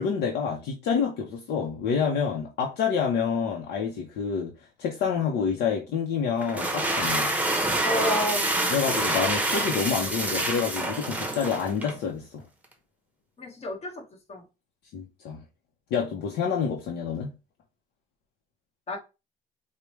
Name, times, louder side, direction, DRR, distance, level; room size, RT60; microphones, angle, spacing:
voice 1, 0.0-4.5 4.8-7.3 8.7-12.4 14.9-15.4 15.9-17.3, left 6 dB, 75° left, 0.8 m, -28 dB
sound 1, 6.4-12.0, right 2 dB, 10° right, 0.8 m, -27 dB
voice 2, 7.8-8.5 13.4-14.4 18.9-19.0, equal, 40° left, 1.3 m, -31 dB
4.8 x 2.2 x 3.0 m
cardioid pair, 110°, 17 cm